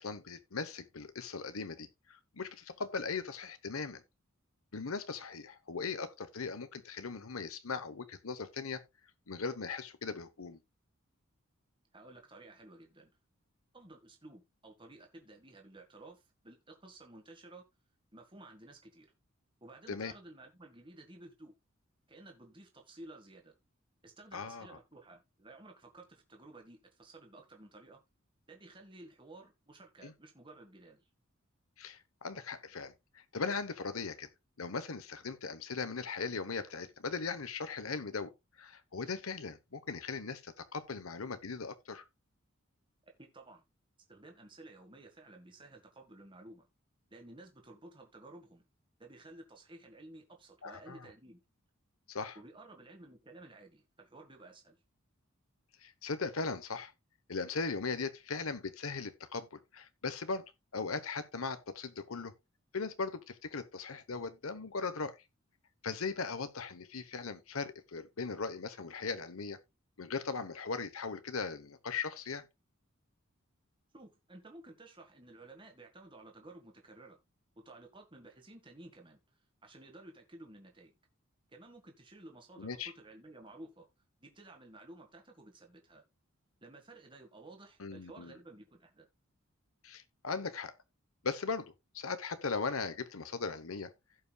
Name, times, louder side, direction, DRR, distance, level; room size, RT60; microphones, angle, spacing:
voice 1, 0.0-4.0 4.7-8.8 9.3-10.6 19.9-20.1 24.3-24.8 30.0-30.1 31.8-34.3 34.6-38.3 38.6-42.0 50.6-51.1 52.1-52.4 55.8-56.9 57.3-60.4 60.7-62.3 62.7-65.2 65.8-69.6 70.0-72.4 82.6-82.9 87.8-88.3 89.8-90.7 91.2-93.9, left 4 dB, 90° left, 1.1 m, -39 dB
voice 2, 11.9-13.1 13.7-17.6 18.1-19.1 19.6-21.5 22.1-23.5 24.0-28.0 28.5-31.0 43.0-43.6 44.1-46.7 47.1-48.6 49.0-51.4 52.4-54.8 73.9-77.2 77.6-79.2 79.6-80.9 81.5-83.9 84.2-86.0 86.6-89.1, right 2 dB, 25° right, 1.8 m, -54 dB
16.0 x 5.6 x 2.3 m
head